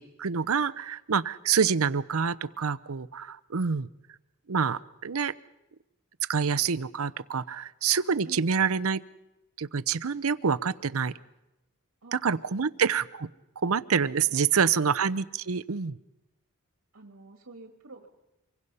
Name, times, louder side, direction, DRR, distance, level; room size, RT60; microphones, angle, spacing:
voice 1, 0.0-3.9 4.5-5.3 6.3-9.0 9.6-11.1 12.1-13.3 13.6-16.0, right 6 dB, 65° right, 15 dB, 0.7 m, -27 dB
voice 2, 8.2-8.5 12.0-12.5 14.3-14.8 16.9-18.1, right 2 dB, 85° right, 4 dB, 1.9 m, -49 dB
25.5 x 23.0 x 5.5 m, 0.97 s
head